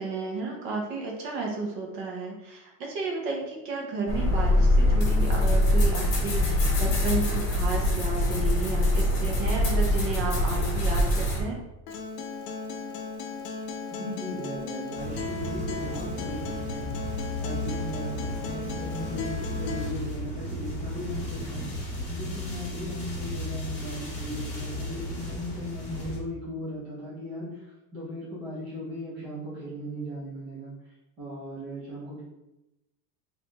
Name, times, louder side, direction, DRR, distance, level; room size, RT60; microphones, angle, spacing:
voice 1, 0.0-11.6, right 3 dB, 40° right, 0 dB, 0.8 m, -33 dB
sound 1, 4.1-11.4, left 1 dB, 35° left, 1.0 m, -23 dB
Acoustic guitar, 11.9-19.9, left 4 dB, 85° left, 0.7 m, -36 dB
voice 2, 13.9-17.0 17.4-21.7 22.1-32.2, equal, 15° right, -10 dB, 0.3 m, -37 dB
sound 2, 14.9-26.2, left 1 dB, 15° left, 1.1 m, -35 dB
4.0 x 2.7 x 2.9 m, 0.93 s
supercardioid pair, 180°, 47 cm